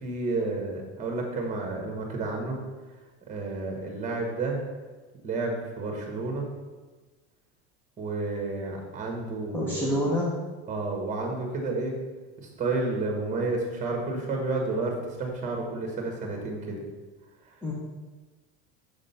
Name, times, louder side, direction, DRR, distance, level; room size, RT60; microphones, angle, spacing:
voice 1, 0.0-2.6 3.3-4.6 5.2-6.4 8.0-9.9 10.7-11.9 12.4-16.8, right 3 dB, 20° right, 1 dB, 1.5 m, -31 dB
voice 2, 9.5-10.3 17.6-17.7, left 1 dB, 5° left, -5 dB, 0.9 m, -27 dB
6.6 x 3.7 x 5.7 m, 1.3 s
cardioid pair, 150°, 33 cm